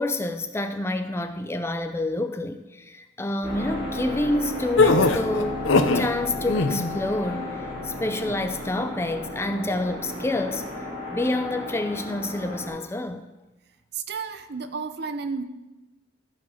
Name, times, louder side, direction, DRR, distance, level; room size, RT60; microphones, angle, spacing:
voice 1, 0.0-5.6 5.9-7.5 7.8-10.7 11.1-13.2, left 2 dB, 15° left, 0.4 m, -28 dB
sound 1, 3.4-12.7, left 1 dB, 25° right, 4.1 m, -34 dB
sound 2, 4.8-6.1 6.4-6.9, left 3 dB, 75° left, 0.7 m, -20 dB
voice 2, 13.9-15.4, right 5 dB, 55° right, 0.7 m, -32 dB
14.0 x 5.0 x 5.6 m
head